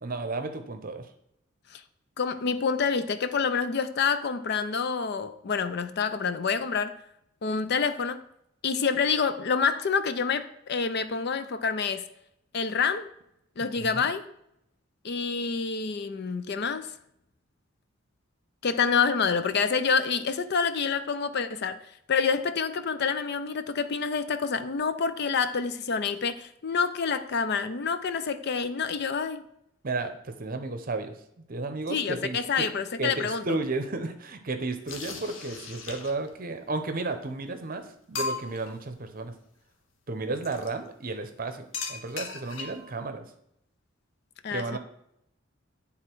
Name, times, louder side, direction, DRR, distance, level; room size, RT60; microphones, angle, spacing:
voice 1, 0.0-1.1 13.8-14.1 29.8-31.2 31.5-32.7 33.0-39.3 40.1-43.3 44.5-44.8, right 3 dB, 45° right, 0.8 m, -33 dB
voice 2, 2.2-7.0 7.4-8.2 8.6-12.0 12.5-13.1 13.6-14.2 15.0-16.9 18.6-21.8 22.1-29.4 31.9-33.4 44.4-44.8, left 5 dB, 55° left, 0.5 m, -27 dB
sound 1, 34.9-36.3 37.2-37.3 37.7-37.8 38.1-38.7 40.4-40.7 41.7-42.9, left 4 dB, 80° left, 0.9 m, -36 dB
9.7 x 3.6 x 4.5 m
head